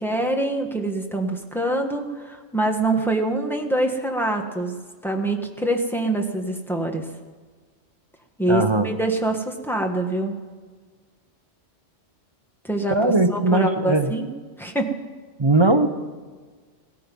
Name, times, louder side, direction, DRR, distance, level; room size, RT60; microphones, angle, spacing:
voice 1, 0.0-4.8 5.0-7.1 8.4-10.4 12.6-14.3 14.6-15.0, right 1 dB, ahead, 3 dB, 1.3 m, -25 dB
voice 2, 8.5-8.9 12.9-14.1 15.4-15.9, right 2 dB, 30° right, 7 dB, 0.6 m, -19 dB
17.0 x 14.0 x 5.4 m, 1.5 s
omnidirectional pair, 1.2 m